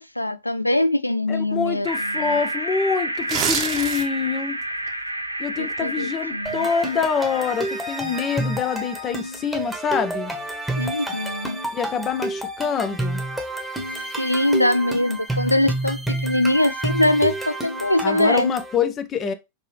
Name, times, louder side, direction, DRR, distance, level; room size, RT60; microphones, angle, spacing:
voice 1, 0.0-2.4 5.6-6.7 10.8-11.6 13.9-18.5, left 1 dB, 85° left, 0.3 m, -22 dB
voice 2, 1.3-4.6 5.4-10.3 11.7-13.2 18.0-19.3, left 6 dB, 30° left, 0.6 m, -25 dB
sound 1, 1.8-10.1, right 1 dB, 85° right, 0.4 m, -31 dB
sound 2, 3.1-4.3 4.7-4.9, right 7 dB, 35° right, 0.9 m, -25 dB
sound 3, 6.5-18.8, right 1 dB, ahead, 1.2 m, -29 dB
5.3 x 2.8 x 3.3 m
figure-of-eight pair, 90°, 0 cm